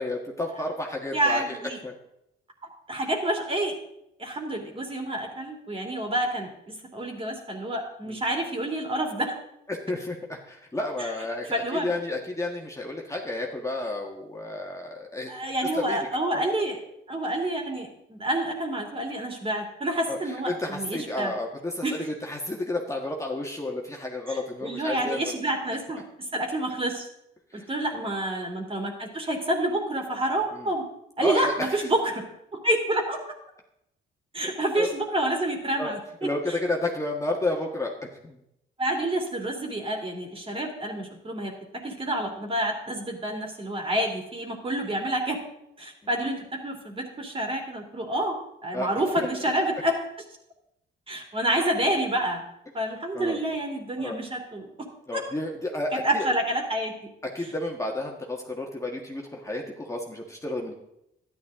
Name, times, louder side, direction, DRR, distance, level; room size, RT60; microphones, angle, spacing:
voice 1, 0.0-1.6 1.8-1.9 8.1-8.2 9.7-15.3 15.7-16.0 16.3-16.4 20.1-25.3 27.5-27.7 27.9-28.1 30.5-30.7 31.2-31.9 34.4-34.5 34.8-34.9 35.8-35.9 36.2-37.9 38.2-38.4 48.7-48.9 49.2-49.3 53.1-53.4 54.0-54.2 55.1-56.3 57.2-60.7, left 2 dB, 15° left, 0 dB, 1.7 m, -31 dB
voice 2, 1.1-1.8 2.9-3.7 4.2-9.3 11.0-11.1 11.5-11.9 15.3-16.8 17.1-21.3 21.8-22.1 24.3-27.1 27.5-30.9 31.2-32.3 32.5-33.2 34.3-36.0 36.5-36.6 38.8-45.4 45.8-49.9 51.1-52.4 52.7-55.2 56.0-56.9, right 1 dB, 25° right, 2 dB, 3.0 m, -28 dB
12.5 x 11.0 x 3.8 m, 0.81 s
cardioid pair, 90°, 20 cm